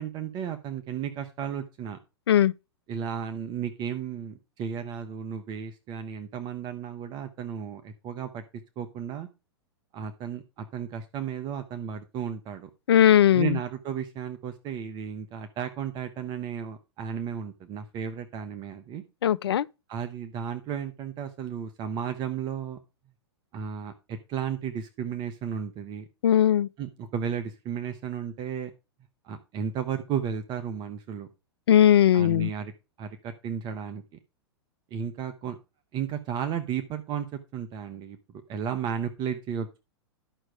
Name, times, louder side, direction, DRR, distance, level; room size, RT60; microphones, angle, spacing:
voice 1, 0.0-2.0 2.9-8.4 8.8-9.3 9.9-12.7 13.3-19.0 19.9-22.8 23.5-26.1 26.8-28.7 29.2-31.3 32.1-32.7 33.0-34.0 34.9-35.6 35.9-38.2 38.5-39.8, right 8 dB, 30° right, 1.1 m, -34 dB
voice 2, 12.9-13.6 19.2-19.7 26.2-26.7 31.7-32.5, left 10 dB, 65° left, 0.5 m, -19 dB
11.5 x 6.2 x 4.8 m
figure-of-eight pair, 105°, 14 cm